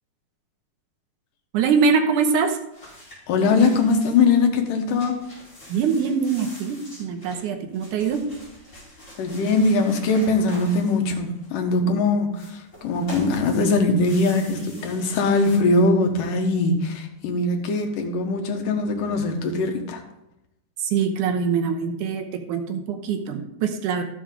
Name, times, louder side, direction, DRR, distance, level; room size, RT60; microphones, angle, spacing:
voice 1, 1.5-2.6 5.7-8.3 20.8-24.0, right 6 dB, 80° right, 4 dB, 2.4 m, -23 dB
sound 1, 2.7-4.4 4.7-11.7 12.3-15.6, left 1 dB, 20° left, 4.6 m, -44 dB
voice 2, 3.3-5.2 9.2-20.0, left 3 dB, 90° left, 4 dB, 2.9 m, -21 dB
13.5 x 7.0 x 3.7 m, 0.84 s
omnidirectional pair, 3.7 m